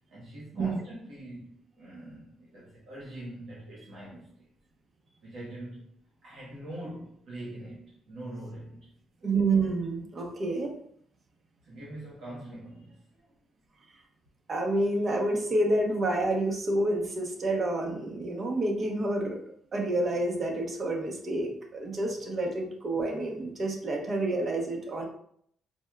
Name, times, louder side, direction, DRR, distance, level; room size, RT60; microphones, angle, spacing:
voice 1, 0.1-4.5 5.2-5.9 6.2-8.9 11.6-13.3, right 1 dB, 75° right, -6 dB, 1.0 m, -43 dB
voice 2, 9.2-10.7 14.5-19.4 19.7-25.0, right 2 dB, 45° right, 1 dB, 0.8 m, -28 dB
4.3 x 2.2 x 2.3 m, 0.66 s
cardioid pair, 90°, 0 cm